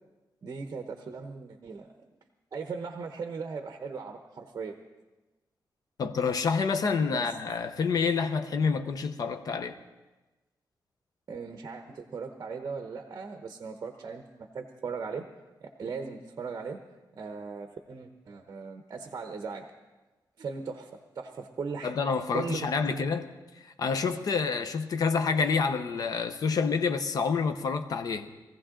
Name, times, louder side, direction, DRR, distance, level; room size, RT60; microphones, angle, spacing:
voice 1, 0.4-1.9 2.5-4.8 7.1-7.3 11.3-15.3 15.6-16.8 17.1-19.7 20.4-21.9 22.3-23.0, right 5 dB, 45° right, 0.9 m, -38 dB
voice 2, 6.0-9.8 21.8-23.3 23.8-28.3, left 5 dB, 55° left, 0.9 m, -28 dB
21.0 x 15.0 x 3.8 m
wide cardioid pair, 160°, 8 cm